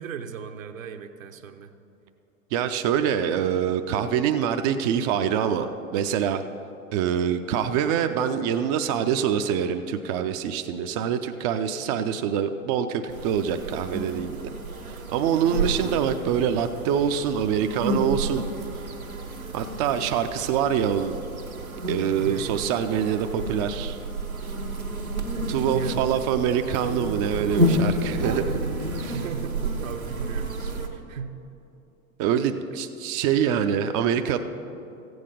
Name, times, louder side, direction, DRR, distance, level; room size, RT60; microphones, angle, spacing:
voice 1, 0.0-1.7 15.5-15.8 22.2-22.7 25.3-26.2 29.1-31.4, right 7 dB, 70° right, 6 dB, 0.9 m, -37 dB
voice 2, 2.5-6.4 6.9-14.5 14.9-18.4 19.5-21.2 21.9-24.0 25.5-28.6 29.0-29.2 32.2-34.4, right 8 dB, 30° right, 7 dB, 0.4 m, -25 dB
sound 1, 13.1-30.9, right 1 dB, 90° right, 1.2 m, -30 dB
14.5 x 7.8 x 5.1 m, 2.8 s
figure-of-eight pair, 90°, 41 cm